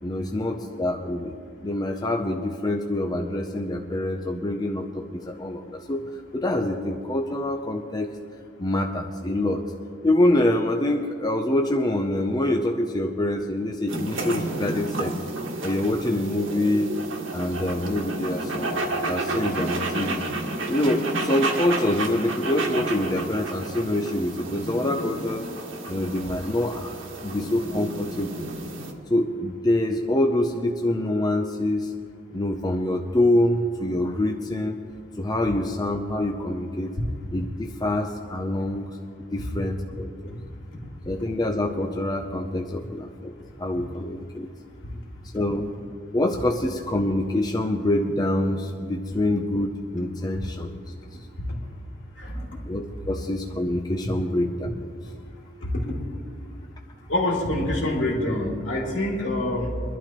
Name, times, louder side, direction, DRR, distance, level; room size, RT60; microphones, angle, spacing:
voice 1, 0.0-6.0 6.3-8.1 8.6-9.6 10.0-15.2 15.6-16.9 17.3-20.2 20.7-25.5 25.9-26.9 27.2-28.5 29.1-31.9 32.3-34.8 35.2-36.9 37.3-38.9 39.3-40.3 41.1-43.3 43.6-44.5 45.3-45.7 46.1-50.8 52.7-54.8, left 1 dB, 20° left, 3 dB, 0.6 m, -25 dB
sound 1, 13.9-28.9, right 2 dB, 80° right, 1.7 m, -31 dB
voice 2, 52.1-52.6 55.6-56.5 57.1-59.8, left 1 dB, 65° left, -2 dB, 2.7 m, -27 dB
23.5 x 12.0 x 3.0 m, 2.2 s
head